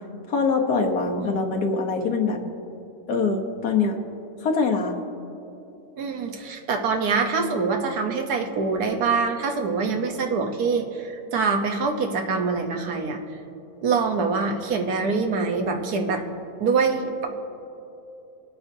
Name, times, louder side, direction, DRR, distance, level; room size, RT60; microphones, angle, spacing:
voice 1, 0.3-2.4 3.1-4.0 4.4-4.9, left 4 dB, 80° left, 2 dB, 1.6 m, -23 dB
voice 2, 6.0-13.4 13.8-16.2 16.6-17.3, right 4 dB, 85° right, 4 dB, 1.5 m, -25 dB
24.0 x 8.6 x 2.7 m, 2.8 s
omnidirectional pair, 1.6 m